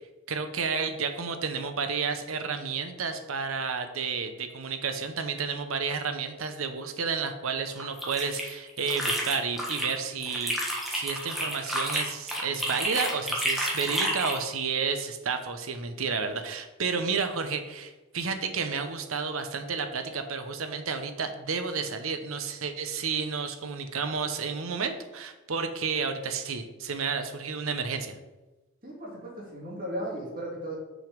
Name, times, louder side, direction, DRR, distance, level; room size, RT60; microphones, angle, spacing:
voice 1, 0.3-10.5 10.9-28.2, right 5 dB, 80° right, 8 dB, 0.8 m, -31 dB
sound 1, 7.8-9.9 10.2-14.4, equal, ahead, 1.2 m, -30 dB
voice 2, 28.8-30.7, right 1 dB, 40° right, -4 dB, 2.3 m, -36 dB
6.2 x 5.1 x 5.2 m, 1.1 s
head